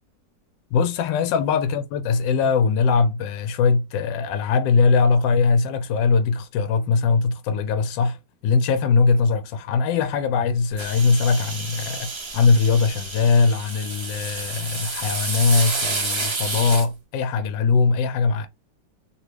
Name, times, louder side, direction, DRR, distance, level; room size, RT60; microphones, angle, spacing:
voice 1, 0.7-8.2 8.4-18.5, left 4 dB, 85° left, 1.3 m, -21 dB
sound 1, 10.8-16.9, right 3 dB, 50° right, 0.3 m, -30 dB
2.9 x 2.7 x 3.2 m
omnidirectional pair, 1.9 m